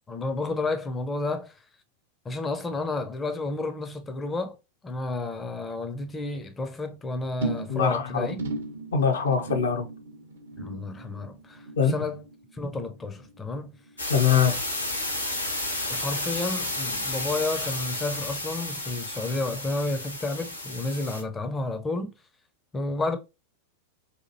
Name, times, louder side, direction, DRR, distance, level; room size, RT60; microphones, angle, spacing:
voice 1, 0.1-1.6 2.2-4.6 4.8-8.4 10.6-12.2 12.5-13.7 15.9-22.1 22.7-23.2, left 2 dB, 15° left, 0.4 m, -31 dB
sound 1, 7.4-14.0 14.3-14.7 15.0-15.1, right 2 dB, 65° right, 0.5 m, -37 dB
voice 2, 7.7-8.3 8.9-9.9 11.8-11.9 14.1-14.6, left 7 dB, 65° left, 0.5 m, -23 dB
sound 2, 14.0-21.2, left 2 dB, 85° left, 0.8 m, -32 dB
2.8 x 2.4 x 2.6 m
figure-of-eight pair, 90°, 0 cm